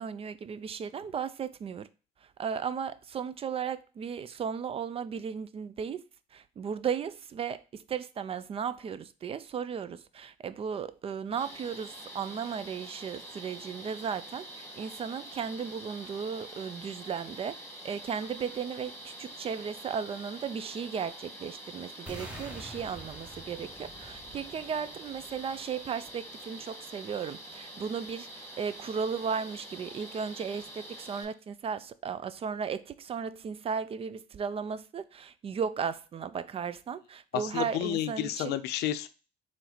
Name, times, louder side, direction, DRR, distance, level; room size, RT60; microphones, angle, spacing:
voice 1, 0.0-1.9 2.4-6.0 6.3-17.6 17.8-38.6, right 6 dB, 35° right, 0.4 m, -35 dB
sound 1, 11.4-31.2, right 1 dB, 15° left, 1.8 m, -46 dB
sound 2, 22.1-26.1, right 1 dB, 5° right, 1.0 m, -47 dB
voice 2, 37.3-39.1, left 12 dB, 80° left, 0.5 m, -31 dB
4.2 x 3.2 x 3.9 m
cardioid pair, 110°, 17 cm